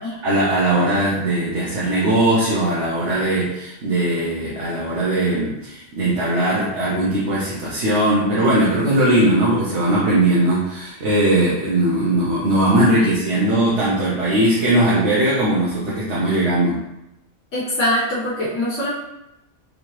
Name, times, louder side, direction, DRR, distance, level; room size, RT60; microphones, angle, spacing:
voice 1, 0.2-16.8, right 1 dB, 70° right, -8 dB, 1.2 m, -19 dB
voice 2, 17.5-18.9, left 1 dB, 80° left, -8 dB, 1.2 m, -23 dB
3.8 x 2.8 x 3.0 m, 0.87 s
omnidirectional pair, 1.2 m